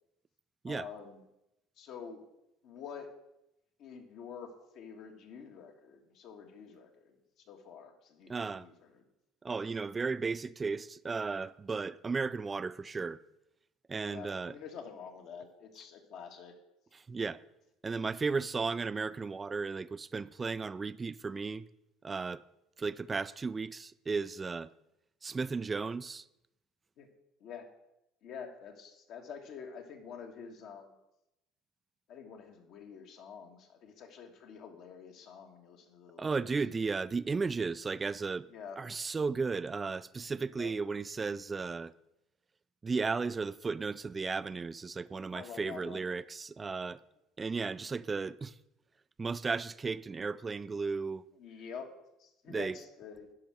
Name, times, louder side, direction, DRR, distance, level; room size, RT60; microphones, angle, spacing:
voice 1, 0.7-1.2 1.8-2.3 2.6-3.1 3.8-4.5 4.7-9.1 14.1-16.6 27.0-27.1 27.4-27.7 28.2-30.9 32.1-36.5 38.5-38.8 40.6-40.7 45.3-46.1 51.4-51.9 52.2-53.3, left 6 dB, 60° left, 1.7 m, -47 dB
voice 2, 8.3-8.7 9.4-13.2 13.9-14.5 17.1-17.4 17.8-21.7 22.0-22.4 22.8-24.7 25.2-26.2 36.2-38.5 38.8-41.9 42.8-47.0 47.4-48.5 49.2-51.2 52.5-52.7, right 4 dB, 25° right, 0.4 m, -35 dB
10.5 x 5.6 x 6.2 m
hypercardioid pair, 80°, 0 cm